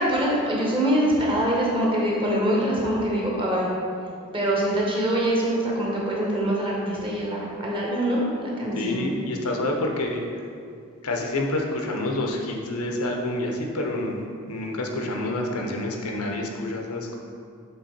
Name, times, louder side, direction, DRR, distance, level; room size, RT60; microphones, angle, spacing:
voice 1, 0.0-3.7 4.3-9.1, right 1 dB, 25° right, -4 dB, 1.1 m, -24 dB
voice 2, 8.7-10.3 11.0-14.2 14.5-17.1, left 1 dB, 90° left, 2 dB, 0.8 m, -28 dB
6.6 x 3.6 x 4.4 m, 2.3 s
head